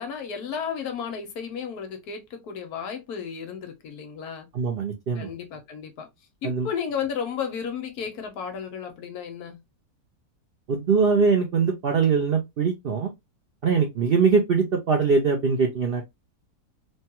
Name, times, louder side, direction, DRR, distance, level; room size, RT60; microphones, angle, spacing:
voice 1, 0.0-4.5 5.1-6.1 6.4-9.6, left 7 dB, 70° left, 1.2 m, -33 dB
voice 2, 4.5-5.3 6.4-6.7 10.7-13.1 13.6-16.1, right 5 dB, 80° right, 0.5 m, -22 dB
3.2 x 2.3 x 2.8 m
omnidirectional pair, 1.8 m